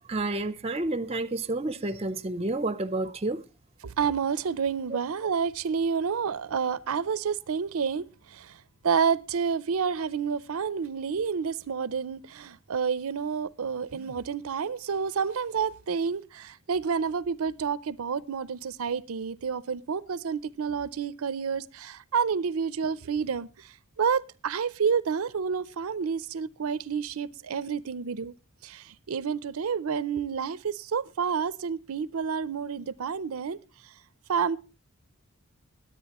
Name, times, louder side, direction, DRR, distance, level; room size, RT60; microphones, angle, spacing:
voice 1, 0.1-3.4, right 2 dB, 30° right, 0.6 m, -30 dB
voice 2, 3.8-8.0 8.3-8.5 8.8-23.5 24.0-28.3 28.6-33.6 34.3-34.6, right 6 dB, 80° right, 0.5 m, -29 dB
20.0 x 8.6 x 2.9 m
head